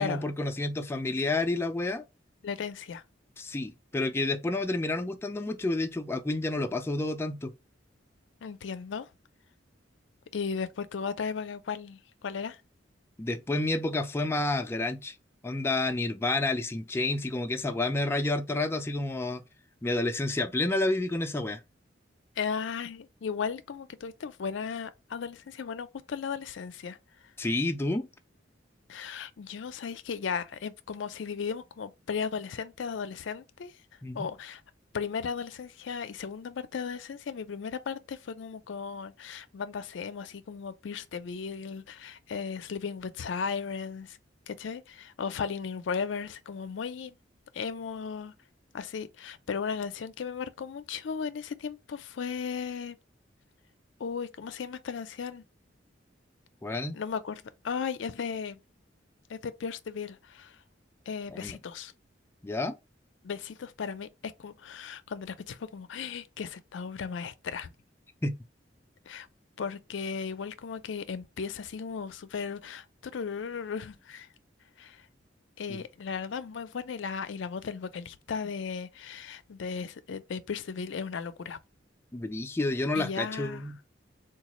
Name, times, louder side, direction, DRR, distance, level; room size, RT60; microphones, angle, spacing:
voice 1, 0.0-2.0 3.4-7.5 13.2-15.1 15.4-19.4 19.8-21.6 27.4-28.1 34.0-34.3 56.6-57.0 61.3-61.6 62.4-62.8 68.2-68.3 75.7-75.8 82.1-83.8, left 2 dB, 15° left, 0.3 m, -30 dB
voice 2, 2.4-3.0 8.4-9.1 10.3-12.6 22.4-27.0 28.9-33.7 34.1-34.6 34.9-44.2 44.5-47.2 47.5-48.3 48.7-53.0 54.0-55.4 56.9-58.6 59.3-60.6 61.1-61.9 63.2-64.1 64.4-67.7 69.1-69.3 69.6-72.9 73.1-74.3 74.8-75.1 75.6-81.6 82.9-83.7, left 6 dB, 80° left, 0.4 m, -36 dB
3.9 x 2.3 x 2.9 m
head